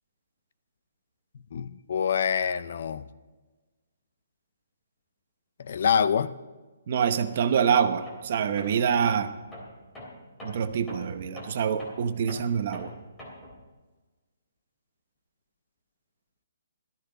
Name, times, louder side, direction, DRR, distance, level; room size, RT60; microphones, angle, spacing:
voice 1, 1.5-3.0 5.6-6.3, left 7 dB, 50° left, 15 dB, 0.5 m, -26 dB
voice 2, 6.9-9.3 10.4-12.9, right 7 dB, 40° right, 9 dB, 0.9 m, -26 dB
Tools, 8.1-8.3 8.6-13.6, left 1 dB, 5° left, 3.1 m, -44 dB
17.5 x 13.5 x 3.9 m, 1.3 s
hypercardioid pair, 175°, 0 cm